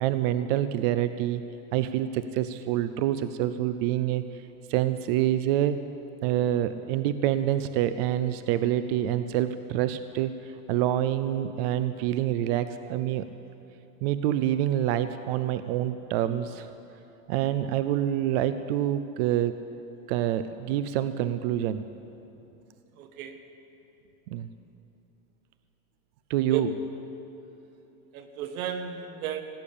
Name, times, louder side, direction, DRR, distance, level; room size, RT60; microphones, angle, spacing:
voice 1, 0.0-1.4 1.7-4.3 4.7-5.8 6.2-13.3 14.0-16.7 17.3-19.6 20.1-21.8 24.3-24.5 26.3-26.7, right 11 dB, 45° right, 12 dB, 0.4 m, -26 dB
voice 2, 23.0-23.4 26.5-26.6 28.1-29.4, right 10 dB, 75° right, 7 dB, 1.5 m, -33 dB
17.0 x 8.7 x 8.6 m, 2.9 s
supercardioid pair, 165°, 42 cm